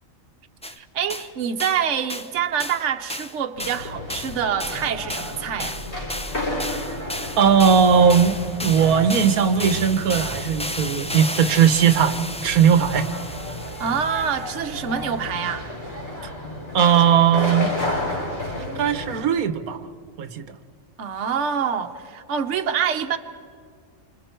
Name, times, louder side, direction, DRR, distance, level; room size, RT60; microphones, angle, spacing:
sound 1, 0.6-0.8 1.1-1.3 1.6-1.8 2.1-2.3 2.6-2.8 3.1-14.6, left 1 dB, 10° left, 0.4 m, -33 dB
voice 1, 0.6-5.8 13.8-15.7 21.0-23.2, right 7 dB, 60° right, 1.2 m, -26 dB
sound 2, 3.6-19.2, left 1 dB, 50° left, 5.0 m, -32 dB
voice 2, 7.4-13.1 16.2-16.3 16.7-17.7 18.6-19.8 20.2-20.5, right 7 dB, 85° right, 1.4 m, -18 dB
27.5 x 26.0 x 4.5 m
omnidirectional pair, 1.5 m